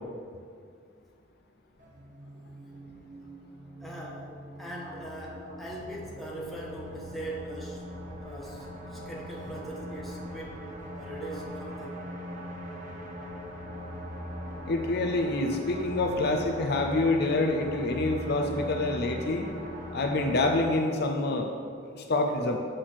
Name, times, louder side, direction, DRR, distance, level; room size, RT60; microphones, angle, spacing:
sound 1, 1.8-20.7, equal, 45° right, 1.2 m, -41 dB
voice 1, 3.8-7.9 8.1-10.6 11.0-12.1 16.1-16.2, right 1 dB, ahead, -5 dB, 1.2 m, -41 dB
voice 2, 14.7-19.5 19.9-21.5 21.8-22.6, left 2 dB, 55° left, 3 dB, 0.6 m, -27 dB
7.8 x 4.1 x 6.2 m, 2.2 s
head